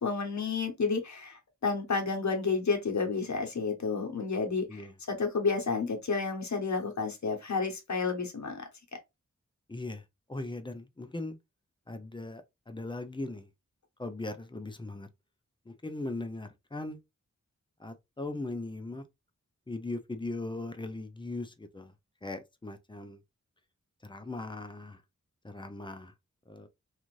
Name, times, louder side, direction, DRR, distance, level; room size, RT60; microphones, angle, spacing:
voice 1, 0.0-8.6, left 4 dB, 60° left, 0.9 m, -31 dB
voice 2, 9.7-10.0 10.3-11.4 11.9-13.5 14.0-15.1 15.7-17.0 17.8-19.0 19.7-21.9 22.2-23.2 24.0-25.0 25.4-26.1 26.5-26.7, left 2 dB, 15° left, 0.4 m, -39 dB
2.5 x 2.5 x 3.0 m
wide cardioid pair, 95°, 32 cm